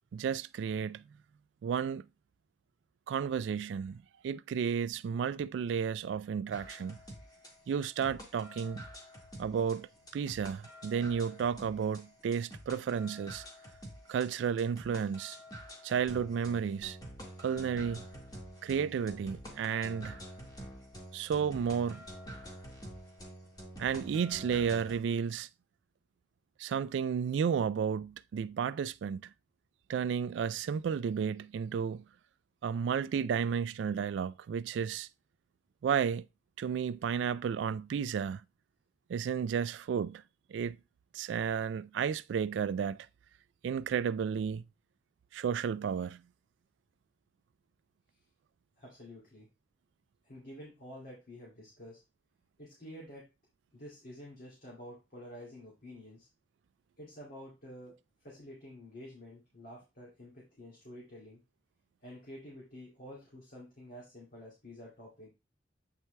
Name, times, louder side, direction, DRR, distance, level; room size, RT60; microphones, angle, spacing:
voice 1, 0.1-1.0 1.6-2.0 3.1-7.0 7.7-8.8 9.4-13.4 14.1-15.4 15.8-17.0 17.4-18.0 18.6-20.2 21.1-22.0 23.8-25.5 26.6-29.3 29.9-32.0 32.6-35.1 35.8-36.3 36.6-38.4 39.1-40.2 40.5-40.8 41.1-43.1 43.6-44.6 45.3-46.2, right 7 dB, 85° right, 0.3 m, -32 dB
sound 1, 6.5-25.0, equal, 20° left, 1.8 m, -48 dB
voice 2, 48.8-49.5 50.2-52.0 52.6-53.3 53.7-56.3 57.0-57.9 58.2-61.4 62.0-65.3, equal, 50° left, 2.6 m, -49 dB
8.3 x 4.6 x 3.3 m
head